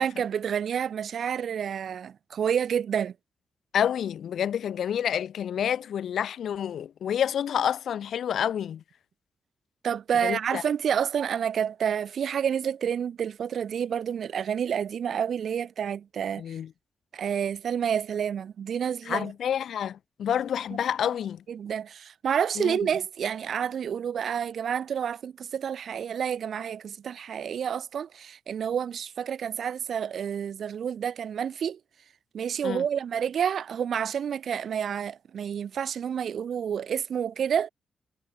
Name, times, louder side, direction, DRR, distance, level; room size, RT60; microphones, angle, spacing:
voice 1, 0.0-3.1 9.8-16.4 17.1-19.3 21.5-31.8 32.3-37.7, right 8 dB, 70° right, 3.8 m, -29 dB
voice 2, 3.7-8.8 10.2-10.6 16.4-16.7 19.1-21.4 22.6-22.8 32.6-32.8, left 9 dB, 80° left, 1.0 m, -28 dB
cardioid pair, 100°, 0 cm